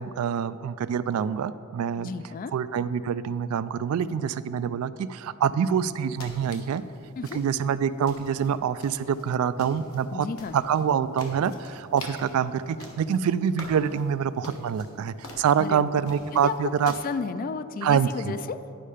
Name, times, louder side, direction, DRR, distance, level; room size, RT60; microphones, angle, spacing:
voice 1, 0.0-2.1 2.5-6.8 7.3-10.3 10.5-16.9 17.8-18.3, right 7 dB, 80° right, 15 dB, 0.3 m, -26 dB
voice 2, 2.0-2.5 7.2-7.4 10.1-10.6 15.6-16.0 16.3-16.5 16.8-18.6, left 5 dB, 40° left, 13 dB, 0.3 m, -33 dB
sound 1, 5.8-16.9, left 1 dB, 70° left, 1.2 m, -47 dB
10.0 x 5.4 x 4.9 m, 2.6 s
head